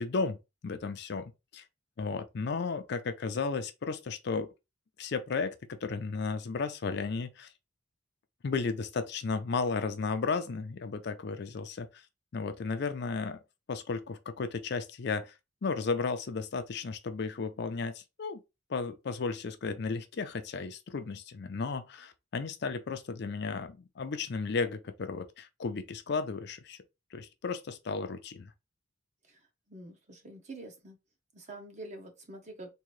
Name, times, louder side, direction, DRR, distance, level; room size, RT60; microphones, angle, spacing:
voice 1, 0.0-1.6 2.0-4.5 5.0-7.5 8.4-12.1 12.3-13.4 13.7-15.4 15.6-18.4 18.7-26.8 27.1-28.5, left 4 dB, 55° left, 0.5 m, -34 dB
voice 2, 29.3-31.0 31.3-32.7, right 2 dB, 35° right, 1.0 m, -46 dB
3.7 x 2.7 x 3.1 m
head